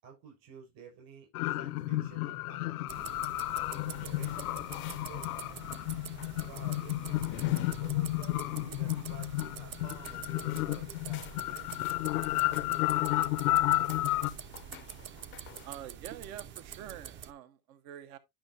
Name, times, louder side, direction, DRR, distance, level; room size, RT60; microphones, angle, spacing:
voice 1, 0.0-3.3 3.7-5.8 6.3-11.7, right 6 dB, 55° right, 5.9 m, -53 dB
sound 1, 1.3-14.3, left 17 dB, 90° left, 0.6 m, -32 dB
sound 2, 2.9-17.3, right 9 dB, 30° right, 0.5 m, -46 dB
sound 3, 3.9-15.7, left 13 dB, 30° left, 0.4 m, -50 dB
voice 2, 15.6-18.2, right 11 dB, 75° right, 0.9 m, -46 dB
11.5 x 5.7 x 2.7 m
supercardioid pair, 120°, 42 cm